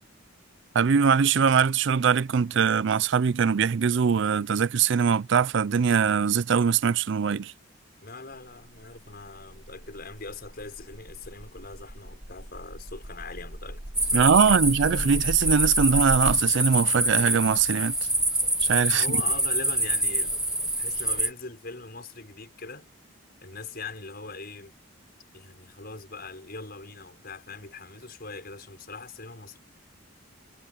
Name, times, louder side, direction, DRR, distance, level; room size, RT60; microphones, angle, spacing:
voice 1, 0.7-7.5 14.1-17.9 18.6-19.1, right 6 dB, 60° right, 0.4 m, -22 dB
voice 2, 8.0-14.6 18.9-20.4 20.8-22.9 23.4-24.7 25.3-29.6, left 3 dB, 50° left, 5.6 m, -41 dB
sound 1, 8.5-16.4, equal, 80° right, 3.6 m, -37 dB
sound 2, 14.0-21.3, right 1 dB, 5° right, 0.7 m, -26 dB
head